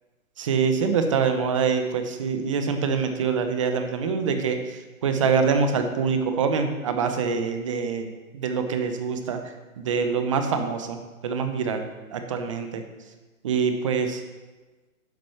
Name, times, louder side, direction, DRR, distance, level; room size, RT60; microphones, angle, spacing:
voice 1, 0.4-12.8 13.4-14.2, right 5 dB, 25° right, 7 dB, 0.8 m, -25 dB
10.5 x 6.1 x 5.8 m, 1.2 s
hypercardioid pair, 155°, 42 cm